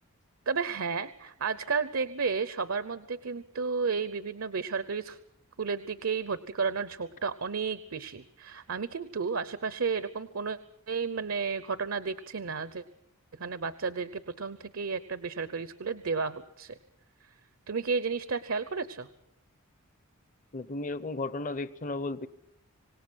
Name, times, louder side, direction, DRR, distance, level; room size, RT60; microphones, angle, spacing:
voice 1, 0.5-5.2 5.6-10.6 10.9-12.8 13.4-16.8 17.7-19.1, right 5 dB, 65° right, 14 dB, 0.8 m, -32 dB
voice 2, 20.5-22.3, left 2 dB, 35° left, 15 dB, 0.8 m, -34 dB
26.0 x 19.0 x 6.3 m, 0.78 s
head